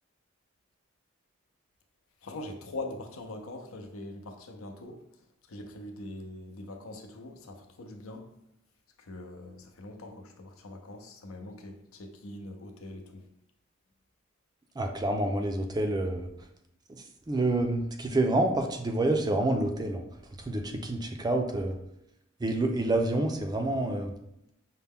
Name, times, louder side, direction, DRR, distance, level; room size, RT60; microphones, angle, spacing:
voice 1, 2.2-5.0 5.5-8.3 9.1-13.2, left 2 dB, 80° left, 4 dB, 0.6 m, -42 dB
voice 2, 14.8-16.3 16.9-20.0 20.4-21.8 22.4-24.1, right 2 dB, 20° right, 4 dB, 0.4 m, -28 dB
5.6 x 2.2 x 3.5 m, 0.77 s
head